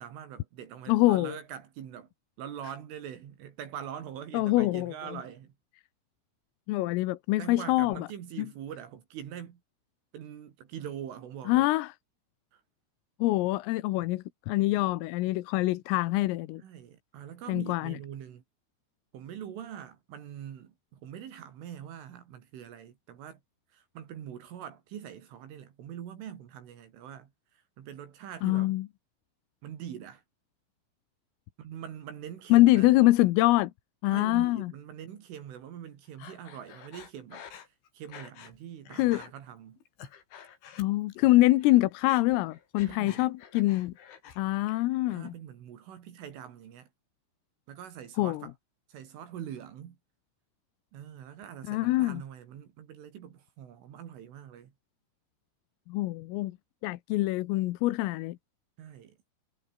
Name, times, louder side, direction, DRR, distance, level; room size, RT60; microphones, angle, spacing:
voice 1, 0.0-2.1 2.4-5.5 7.4-9.6 10.1-11.7 12.5-12.6 16.6-18.4 19.1-23.4 23.7-28.7 29.6-30.2 31.6-32.9 34.1-37.4 37.9-39.8 42.9-43.3 45.1-46.9 47.7-48.5 48.9-50.0 50.9-54.7 58.8-59.2, right 9 dB, 70° right, 5.2 m, -43 dB
voice 2, 0.9-1.4 4.3-4.9 6.7-8.1 11.5-11.9 13.2-16.6 17.5-18.0 28.4-28.9 32.5-33.7 34.0-34.7 38.9-39.2 40.8-43.9 44.4-45.3 48.2-48.4 51.7-52.2 55.9-56.6 56.8-58.4, left 18 dB, 85° left, 3.7 m, -25 dB
Breathing, 36.2-38.6 38.9-39.3 39.8-41.3 41.6-44.4 44.7-45.3, left 8 dB, 65° left, 5.8 m, -49 dB
omnidirectional pair, 5.9 m